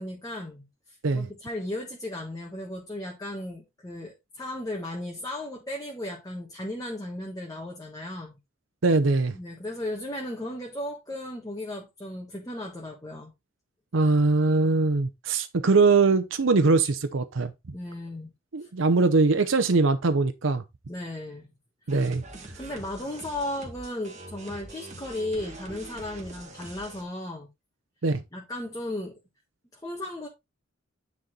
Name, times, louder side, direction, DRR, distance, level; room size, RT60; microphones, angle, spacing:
voice 1, 0.0-8.4 9.3-13.3 17.7-18.3 18.6-18.7 20.9-21.5 22.6-27.5 28.3-29.2 29.7-30.3, left 1 dB, 20° left, 1.5 m, -35 dB
voice 2, 8.8-9.3 13.9-17.5 18.5-20.6 21.9-22.2 28.0-28.2, right 3 dB, 75° right, 0.7 m, -22 dB
sound 1, 21.9-27.0, right 1 dB, 35° right, 2.0 m, -44 dB
9.5 x 4.2 x 3.9 m
head